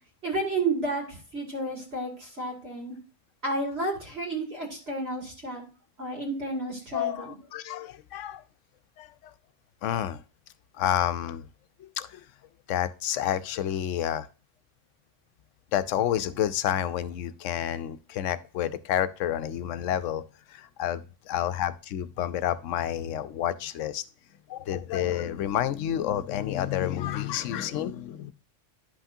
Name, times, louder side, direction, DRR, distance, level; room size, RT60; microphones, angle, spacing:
voice 1, 0.2-3.0 3.4-5.6 6.0-7.3, right 2 dB, 55° right, 0 dB, 2.6 m, -31 dB
voice 2, 6.9-8.4 9.0-9.3 9.8-10.2 10.8-11.4 11.8-12.2 12.7-14.3 15.7-20.2 20.5-24.0 24.5-28.3, left 11 dB, 85° left, 13 dB, 0.9 m, -29 dB
10.5 x 5.7 x 2.7 m, 0.35 s
omnidirectional pair, 1.2 m